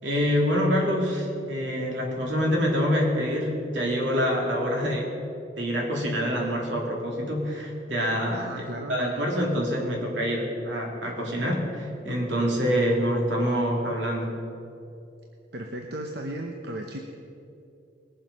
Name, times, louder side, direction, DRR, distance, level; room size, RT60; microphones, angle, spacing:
voice 1, 0.0-5.1 5.6-8.6 8.9-14.3, equal, 80° right, -1 dB, 2.8 m, -26 dB
voice 2, 8.3-9.0 15.5-17.0, right 1 dB, 60° right, 3 dB, 0.9 m, -35 dB
20.0 x 7.6 x 5.4 m, 2.7 s
head